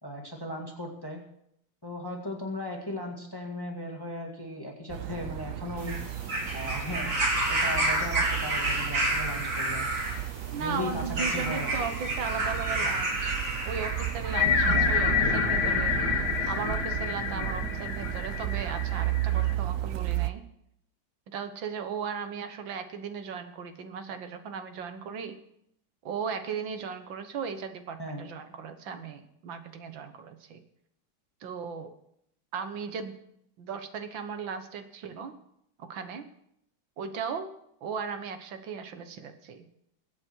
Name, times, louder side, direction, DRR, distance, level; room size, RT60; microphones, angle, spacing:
voice 1, 0.0-1.2 1.8-6.0 6.5-7.2 7.5-9.9 10.6-11.9 12.8-12.9 28.0-28.2, left 1 dB, 10° left, 1 dB, 1.9 m, -37 dB
sound 1, 4.9-20.3, right 15 dB, 90° right, 0.7 m, -33 dB
sound 2, 5.8-14.4 15.4-15.5, right 1 dB, 45° right, 3.3 m, -30 dB
voice 2, 10.5-13.4 13.7-16.0 16.5-20.4 21.3-25.4 26.0-30.6 31.4-31.9 32.5-33.2 33.6-35.3 35.8-36.3 37.0-37.5 37.8-39.7, right 6 dB, 70° right, 9 dB, 1.9 m, -36 dB
sound 3, 14.3-19.5, left 6 dB, 55° left, 2.1 m, -28 dB
22.0 x 8.4 x 4.6 m, 0.74 s
omnidirectional pair, 2.2 m